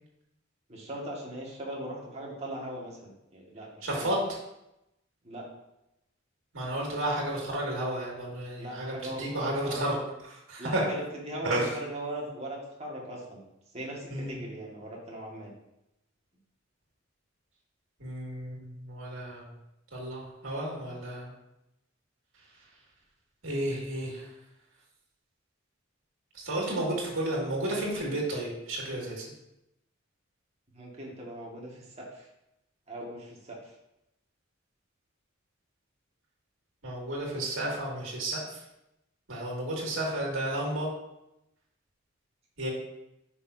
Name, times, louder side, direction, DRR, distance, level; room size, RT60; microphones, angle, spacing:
voice 1, 0.7-4.1 5.2-5.5 8.5-9.8 10.6-13.4 13.7-15.5 30.7-32.3 32.9-33.7, right 1 dB, 30° right, -3 dB, 1.8 m, -39 dB
voice 2, 3.8-4.2 6.5-10.0 10.2-10.8 11.4-11.7 14.1-14.4 18.0-19.5 19.9-21.3 23.4-24.2 26.4-29.2 36.8-38.4 39.3-40.9 42.6-42.7, right 1 dB, 70° right, -3 dB, 2.3 m, -32 dB
9.4 x 5.9 x 2.7 m, 0.87 s
head